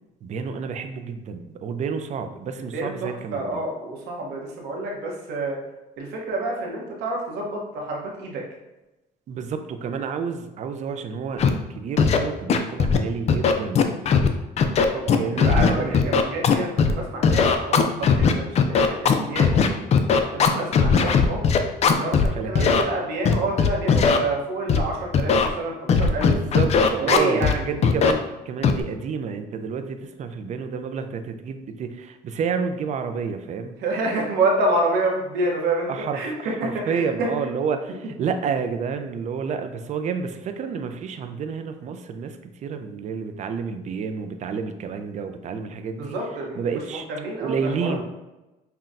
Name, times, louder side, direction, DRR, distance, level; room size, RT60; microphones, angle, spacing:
voice 1, 0.2-3.6 9.3-13.8 15.1-16.2 22.3-22.9 26.1-33.8 35.9-36.3 36.6-46.2 46.6-47.0 47.4-48.0, right 6 dB, 45° right, 7 dB, 0.4 m, -29 dB
voice 2, 2.5-5.6 6.0-8.4 14.9-19.9 20.3-21.5 22.0-26.3 27.0-27.7 33.8-37.3 46.0-48.0, right 2 dB, 80° right, -1 dB, 0.9 m, -28 dB
Scratching (performance technique), 11.4-11.5 12.0-12.2 12.5-13.0 13.3-14.3 14.6-16.9 17.2-22.3 22.6-22.8 23.3-24.2 24.7-24.8 25.1-25.5 25.9-27.5 27.8-28.1 28.6-28.8, left 6 dB, 40° left, 0.4 m, -18 dB
5.7 x 2.2 x 2.5 m, 1.0 s
cardioid pair, 110°, 17 cm